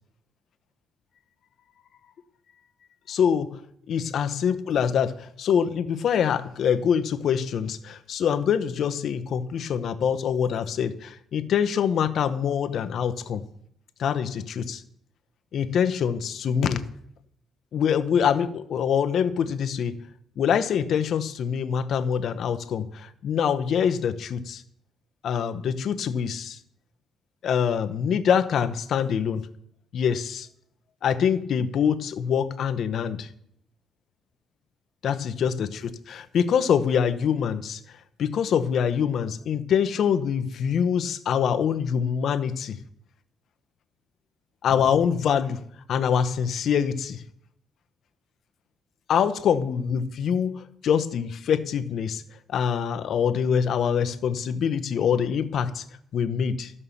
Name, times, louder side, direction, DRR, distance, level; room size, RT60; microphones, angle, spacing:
voice 1, 3.1-3.6 3.9-13.4 14.0-14.8 15.5-16.9 17.7-19.9 20.4-24.6 25.2-26.6 27.4-29.5 29.9-30.5 31.0-33.3 35.0-37.8 38.2-42.8 44.6-45.6 45.9-47.2 49.1-52.2 52.5-55.8 56.1-56.7, left 7 dB, 65° left, 10 dB, 0.8 m, -25 dB
13.0 x 5.6 x 7.1 m, 0.70 s
cardioid pair, 90°, 0 cm